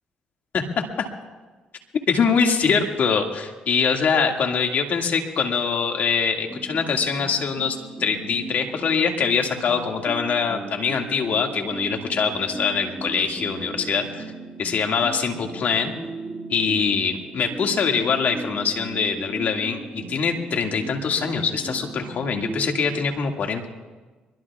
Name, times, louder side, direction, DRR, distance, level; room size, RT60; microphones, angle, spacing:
voice 1, 0.5-1.1 2.1-14.3 14.6-15.9 16.5-23.6, left 6 dB, 60° left, 3 dB, 2.2 m, -23 dB
sound 1, 6.5-23.0, right 2 dB, 20° right, 2.4 m, -37 dB
24.0 x 22.5 x 2.5 m, 1.3 s
supercardioid pair, 65°, 3 cm